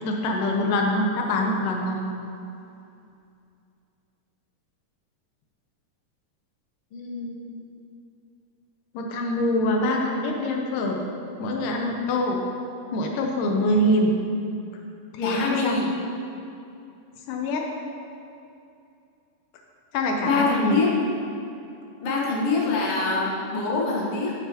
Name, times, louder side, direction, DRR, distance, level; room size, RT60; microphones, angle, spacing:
voice 1, 0.0-2.0 8.9-11.0 11.4-12.4 12.9-14.1 15.1-15.8 17.3-17.7 19.9-20.8, left 1 dB, 85° left, 1 dB, 2.4 m, -24 dB
voice 2, 6.9-7.4 15.2-15.9 20.2-21.0 22.0-24.3, left 3 dB, 55° left, -3 dB, 2.0 m, -25 dB
12.5 x 7.0 x 2.9 m, 2.6 s
omnidirectional pair, 3.7 m